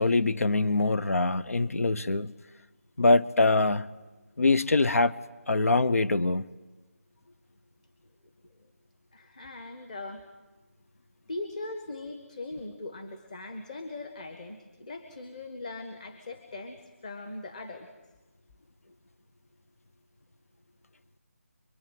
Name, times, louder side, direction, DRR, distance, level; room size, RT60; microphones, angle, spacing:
voice 1, 0.0-2.3 3.0-3.9 4.4-5.1 5.5-6.4, left 3 dB, 80° left, 1.0 m, -23 dB
voice 2, 9.1-10.2 11.3-17.9, left 2 dB, 30° left, 1.6 m, -40 dB
25.0 x 23.5 x 9.2 m
figure-of-eight pair, 175°, 8 cm